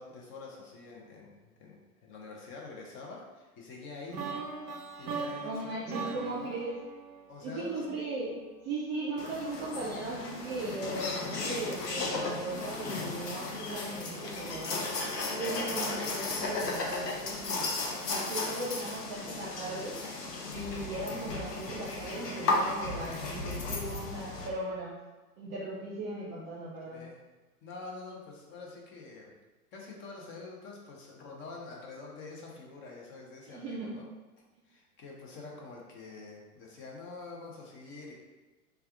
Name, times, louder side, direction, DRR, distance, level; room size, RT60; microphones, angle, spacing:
voice 1, 0.0-4.4 4.7-6.6 7.3-7.9 26.9-27.2 27.6-29.3 29.7-34.0 34.7-38.1, left 3 dB, 25° left, -1 dB, 0.6 m, -46 dB
sound 1, 4.1-8.1, right 4 dB, 75° right, 0.7 m, -40 dB
voice 2, 5.4-6.8 7.4-8.4 8.6-14.8 15.3-17.6 18.0-20.0 20.4-24.9 25.4-27.0 33.5-34.0, right 2 dB, 20° right, -7 dB, 0.4 m, -38 dB
sound 2, 9.2-24.5, left 3 dB, 85° left, 0.8 m, -35 dB
3.3 x 2.4 x 3.5 m, 1.2 s
figure-of-eight pair, 100°, 47 cm